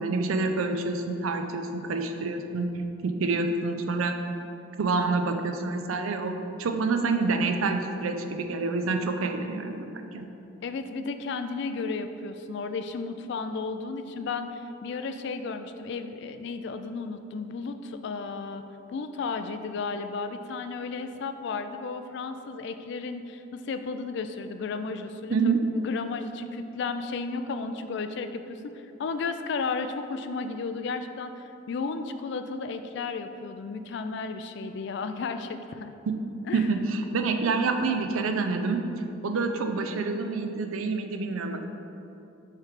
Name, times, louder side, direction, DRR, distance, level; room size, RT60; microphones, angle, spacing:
voice 1, 0.0-2.7 3.0-4.2 4.8-10.3 25.3-25.6 36.1-36.2 36.5-38.9 39.2-41.7, right 3 dB, 85° right, 6 dB, 0.5 m, -27 dB
voice 2, 10.6-18.6 18.9-35.9 36.5-36.7, left 4 dB, 55° left, 9 dB, 0.3 m, -33 dB
6.5 x 3.3 x 4.9 m, 2.8 s
head